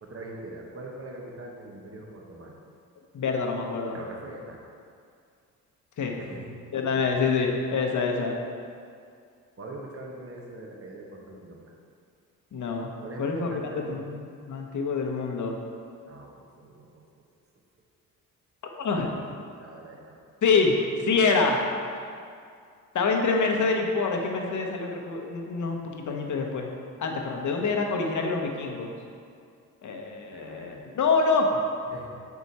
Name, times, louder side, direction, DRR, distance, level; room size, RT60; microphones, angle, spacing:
voice 1, 0.0-2.6 3.9-4.6 6.2-6.5 9.6-11.6 13.0-14.0 16.1-17.0 19.6-20.2 21.0-21.2 30.3-30.9 31.9-32.1, right 2 dB, 40° right, 0 dB, 1.2 m, -42 dB
voice 2, 3.1-4.0 6.0-6.2 6.7-8.3 12.5-12.9 13.2-14.2 14.5-15.5 18.8-19.1 20.4-20.8 21.1-21.6 22.9-26.7 27.0-28.9 29.8-31.6, left 4 dB, 55° left, 1 dB, 1.0 m, -26 dB
6.2 x 4.7 x 4.2 m, 2.3 s
supercardioid pair, 65°, 36 cm